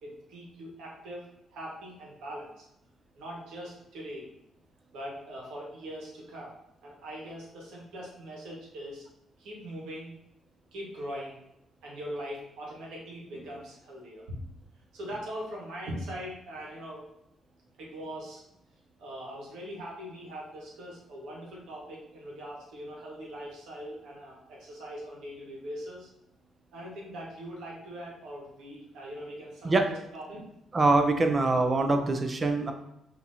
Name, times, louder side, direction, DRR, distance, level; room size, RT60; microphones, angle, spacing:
voice 1, 0.0-1.2 1.5-2.7 3.1-4.3 4.9-6.5 6.8-9.1 9.4-10.1 10.7-11.4 11.8-14.4 14.9-17.0 17.8-18.4 19.0-26.1 26.7-30.4, equal, 85° right, -3 dB, 1.5 m, -41 dB
voice 2, 30.7-32.7, right 2 dB, 30° right, 6 dB, 0.6 m, -24 dB
5.8 x 3.0 x 2.7 m, 0.83 s
cardioid pair, 90°, 0 cm